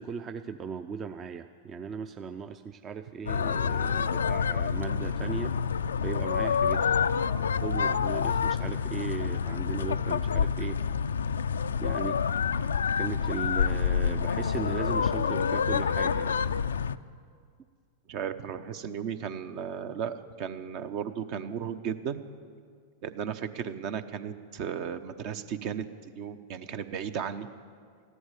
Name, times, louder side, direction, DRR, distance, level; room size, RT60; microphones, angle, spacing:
voice 1, 0.0-5.5 6.0-7.0 7.6-10.8 11.2-11.5 11.8-12.2 12.9-16.4, right 6 dB, 30° right, 8 dB, 0.6 m, -37 dB
sound 1, 3.3-17.0, left 6 dB, 85° left, 0.3 m, -28 dB
voice 2, 18.1-22.2 23.0-25.8 26.2-27.5, right 8 dB, 50° right, 10 dB, 0.9 m, -35 dB
14.5 x 11.0 x 8.3 m, 2.1 s
hypercardioid pair, 105°, 0 cm